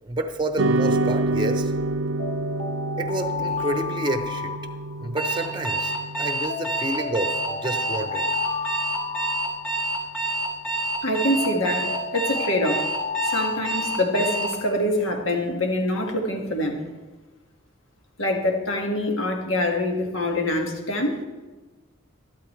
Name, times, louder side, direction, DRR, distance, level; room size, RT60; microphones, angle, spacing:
voice 1, 0.0-1.7 3.0-4.6 5.0-8.3, right 1 dB, 20° right, 6 dB, 0.7 m, -29 dB
sound 1, 0.6-9.1, right 2 dB, 75° right, 0.5 m, -29 dB
sound 2, 2.2-5.4 6.5-10.3 11.4-14.6, left 4 dB, 30° left, 0.8 m, -33 dB
Alarm, 5.2-14.6, right 2 dB, 5° left, 2.0 m, -27 dB
voice 2, 11.0-12.9 13.2-16.8 18.2-21.2, left 1 dB, 80° left, 3 dB, 1.8 m, -25 dB
12.5 x 12.5 x 3.2 m, 1.2 s
head